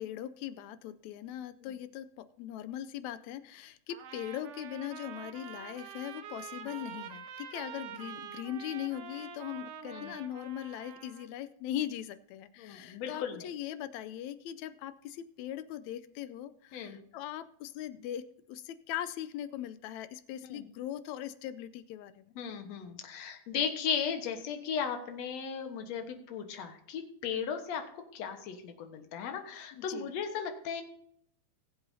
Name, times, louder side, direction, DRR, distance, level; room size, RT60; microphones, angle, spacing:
voice 1, 0.0-22.2 29.7-30.1, left 11 dB, 80° left, 13 dB, 1.8 m, -40 dB
Trumpet, 3.9-11.3, right 8 dB, 75° right, 1.4 m, -46 dB
voice 2, 12.6-13.5 16.7-17.0 20.4-20.6 22.4-30.8, left 7 dB, 65° left, 5 dB, 2.3 m, -36 dB
20.5 x 7.9 x 2.7 m, 0.70 s
omnidirectional pair, 3.5 m